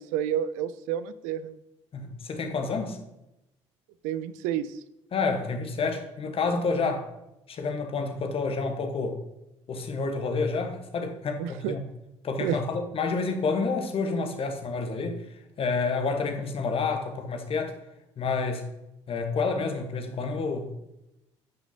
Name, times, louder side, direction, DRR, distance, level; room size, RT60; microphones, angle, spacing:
voice 1, 0.0-1.6 4.0-4.8 11.4-11.7 12.4-12.6, right 10 dB, 60° right, 0.5 m, -30 dB
voice 2, 1.9-3.0 5.1-7.1 7.5-9.2 9.7-11.8 12.2-15.2 15.6-17.8 18.2-18.7 19.1-20.7, left 4 dB, 40° left, 1.2 m, -29 dB
10.5 x 5.9 x 2.8 m
figure-of-eight pair, 50°, 15 cm